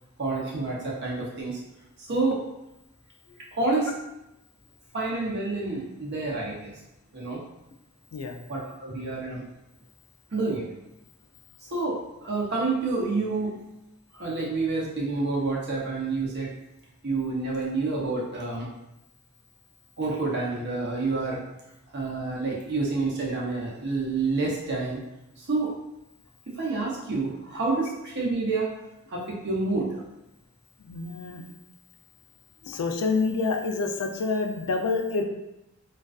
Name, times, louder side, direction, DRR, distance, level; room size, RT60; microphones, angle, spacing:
voice 1, 0.2-1.6 2.0-2.4 3.5-3.9 4.9-6.8 7.1-7.4 8.5-9.4 10.3-10.7 11.6-13.7 14.1-16.5 17.0-18.7 20.0-21.4 21.9-25.0 25.4-25.8 26.5-28.7 29.1-30.0 32.6-32.7, right 3 dB, 50° right, -4 dB, 0.7 m, -28 dB
voice 2, 30.8-31.4 32.7-35.2, left 4 dB, 90° left, 4 dB, 0.4 m, -27 dB
2.4 x 2.3 x 2.3 m, 0.90 s
head